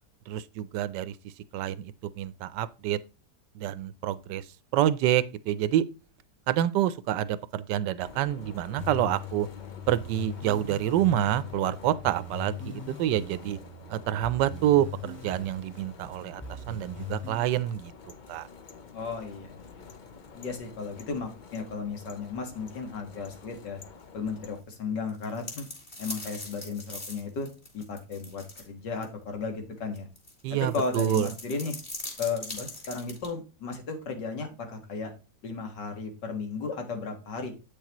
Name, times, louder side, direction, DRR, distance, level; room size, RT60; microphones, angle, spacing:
voice 1, 0.3-1.2 1.5-3.0 3.5-4.5 4.7-5.8 6.5-9.5 9.9-13.6 13.9-17.9 18.3-18.5 30.4-31.3, right 12 dB, 85° right, 1.3 m, -27 dB
sound 1, 8.0-24.6, left 5 dB, 60° left, 0.5 m, -49 dB
sound 2, 8.8-17.5, left 3 dB, 5° left, 1.6 m, -41 dB
voice 2, 18.9-19.9 20.3-23.8 24.1-25.7 26.0-27.5 27.7-30.1 30.5-31.7 32.2-35.1 35.4-37.5, left 4 dB, 85° left, 2.3 m, -35 dB
sound 3, 25.1-28.7 29.0-29.1 29.9-33.3, left 1 dB, 25° left, 2.6 m, -40 dB
8.6 x 6.5 x 3.0 m
omnidirectional pair, 1.8 m